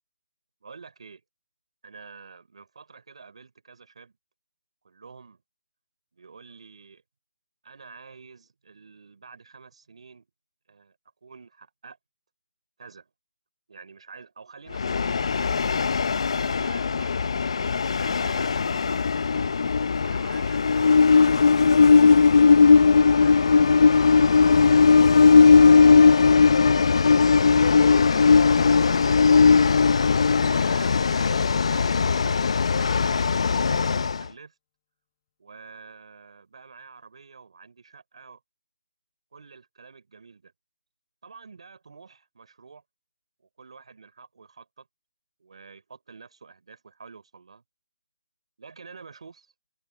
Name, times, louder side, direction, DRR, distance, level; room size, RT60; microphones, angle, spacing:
voice 1, 0.6-1.2 1.8-4.1 4.8-5.4 6.1-7.0 7.6-10.3 10.7-11.0 11.2-12.0 12.8-13.1 13.7-15.9 16.3-19.5 20.0-21.2 22.0-26.9 28.1-29.8 30.5-34.5 35.4-38.4 39.3-40.5 41.2-42.8 43.6-44.9 45.4-47.6 48.6-49.5, right 5 dB, 60° right, 5.1 m, -48 dB
Train, 14.7-34.2, left 5 dB, 55° left, 0.5 m, -18 dB
sound 1, 24.0-29.9, left 12 dB, 25° left, 4.3 m, -52 dB
open air
hypercardioid pair, 170°, 4 cm